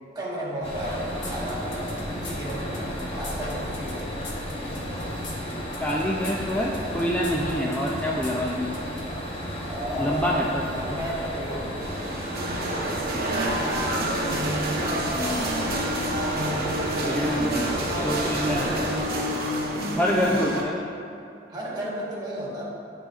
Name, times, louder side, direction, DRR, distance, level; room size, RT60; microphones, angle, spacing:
voice 1, 0.1-4.3 9.6-10.3 10.7-11.9 20.2-20.3 21.5-22.7, equal, 25° right, -6 dB, 1.4 m, -33 dB
sound 1, 0.6-19.0, equal, 30° left, 1.0 m, -33 dB
sound 2, 1.2-9.1, left 3 dB, 75° left, 1.1 m, -41 dB
voice 2, 5.8-8.7 10.0-10.7 14.9-15.5 17.0-17.7 18.0-18.8 20.0-20.8, equal, 10° left, -3 dB, 0.4 m, -26 dB
sound 3, 11.8-20.6, right 1 dB, 55° right, 0.9 m, -28 dB
12.0 x 4.2 x 2.4 m, 2.6 s
head